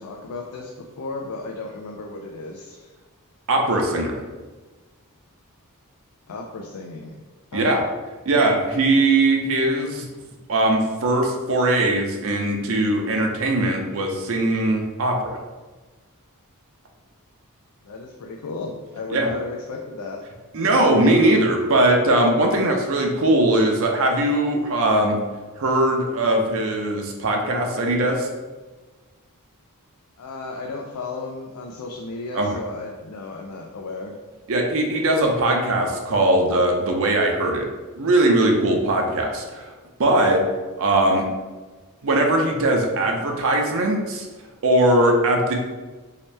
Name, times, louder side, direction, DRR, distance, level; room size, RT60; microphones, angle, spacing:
voice 1, 0.0-2.9 6.3-7.2 7.5-7.8 17.8-20.2 20.6-20.8 30.2-34.2, left 3 dB, 90° left, 0 dB, 0.4 m, -34 dB
voice 2, 3.5-4.2 7.5-7.8 8.3-10.1 10.5-15.4 19.1-19.3 20.5-25.2 25.6-28.3 32.3-32.6 34.5-37.7 38.0-39.7 40.0-40.4 40.8-41.3 42.0-44.3 44.6-45.5, right 1 dB, 65° right, 2 dB, 0.6 m, -20 dB
3.2 x 2.8 x 3.2 m, 1.3 s
head